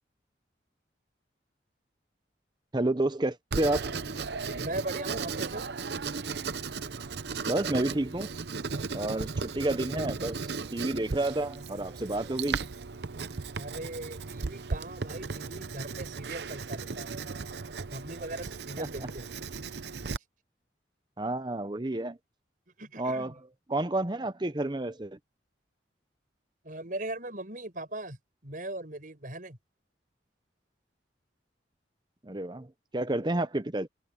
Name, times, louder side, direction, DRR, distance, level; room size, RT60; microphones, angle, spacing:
voice 1, 2.7-4.0 7.5-8.3 8.9-12.6 18.8-18.9 21.2-22.2 23.0-23.3 23.7-25.2 32.2-33.9, right 1 dB, 25° right, 0.8 m, -30 dB
Writing, 3.5-20.2, right 4 dB, 65° right, 0.7 m, -36 dB
voice 2, 4.6-5.6 9.6-9.7 13.6-17.1 17.9-19.5 22.8-23.4 26.6-28.2 28.4-29.6, right 2 dB, 45° right, 6.2 m, -39 dB
head